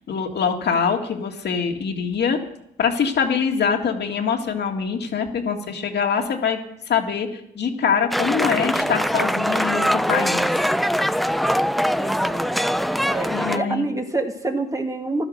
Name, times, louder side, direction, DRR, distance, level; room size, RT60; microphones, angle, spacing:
voice 1, 0.0-2.4 2.8-6.6 6.9-10.5 13.3-13.9, left 6 dB, 60° left, 2 dB, 2.3 m, -24 dB
sound 1, 8.1-13.6, equal, ahead, 0.5 m, -22 dB
voice 2, 12.0-12.6 13.1-15.2, right 2 dB, 15° right, 3 dB, 2.1 m, -27 dB
15.0 x 12.0 x 6.6 m, 0.79 s
cardioid pair, 90°, 20 cm